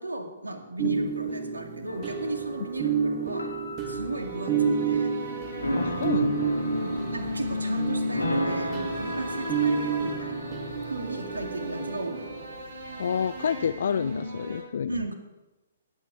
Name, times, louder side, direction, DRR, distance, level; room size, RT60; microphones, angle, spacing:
voice 1, 0.0-3.5 3.9-5.1 6.7-10.5 10.8-12.3 14.9-15.1, right 2 dB, 75° right, 4 dB, 2.3 m, -36 dB
sound 1, 0.8-12.4, right 6 dB, 30° right, 1.6 m, -30 dB
sound 2, 1.9-12.4, equal, 80° left, 2.8 m, -35 dB
sound 3, 4.1-14.6, left 1 dB, 55° right, 4.5 m, -36 dB
voice 2, 5.7-6.6 13.0-15.0, left 7 dB, 55° left, 14 dB, 0.4 m, -29 dB
18.5 x 9.3 x 5.0 m, 1.1 s
figure-of-eight pair, 125°, 0 cm